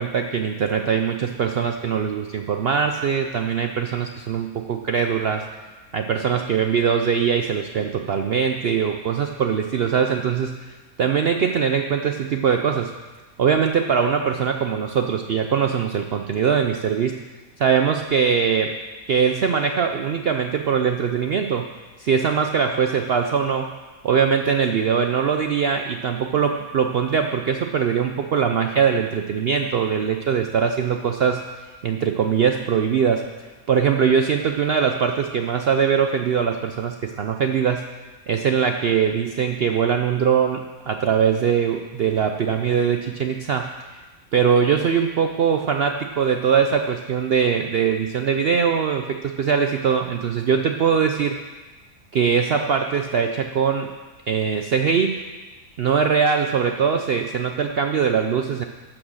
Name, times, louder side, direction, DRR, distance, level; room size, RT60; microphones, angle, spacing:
voice 1, 0.0-5.4 5.9-12.9 13.4-17.1 17.6-18.7 19.1-21.7 22.0-23.7 24.0-31.4 31.8-33.2 33.7-37.8 38.3-44.0 44.3-51.4 52.1-53.9 54.3-55.1 55.8-58.6, right 7 dB, 75° right, 5 dB, 0.5 m, -21 dB
12.5 x 6.2 x 6.4 m, 1.3 s
omnidirectional pair, 1.6 m